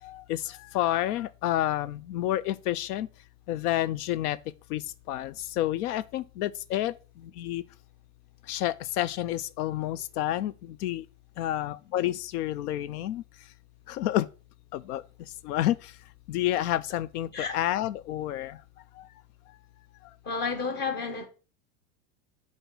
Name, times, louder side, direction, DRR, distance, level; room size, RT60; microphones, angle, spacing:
voice 1, 0.0-3.1 3.5-4.4 4.7-6.9 7.2-7.6 8.5-11.0 11.4-13.2 13.9-14.3 14.7-15.0 15.4-15.9 16.3-18.6 19.0-19.1, left 13 dB, 85° left, 0.6 m, -29 dB
voice 2, 20.2-21.3, left 4 dB, 25° left, 1.2 m, -31 dB
8.0 x 2.8 x 6.0 m
supercardioid pair, 170°, 44 cm